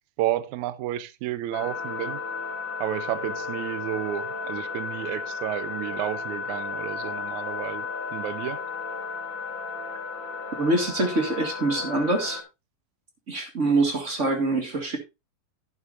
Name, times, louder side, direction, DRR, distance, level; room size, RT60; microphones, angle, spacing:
voice 1, 0.2-2.2 2.8-8.6, right 13 dB, 85° right, 1.7 m, -31 dB
sound 1, 1.5-12.4, left 4 dB, 35° left, 2.8 m, -34 dB
voice 2, 10.6-12.4 13.3-15.0, right 2 dB, 30° right, 1.5 m, -24 dB
11.0 x 10.5 x 2.6 m
omnidirectional pair, 4.1 m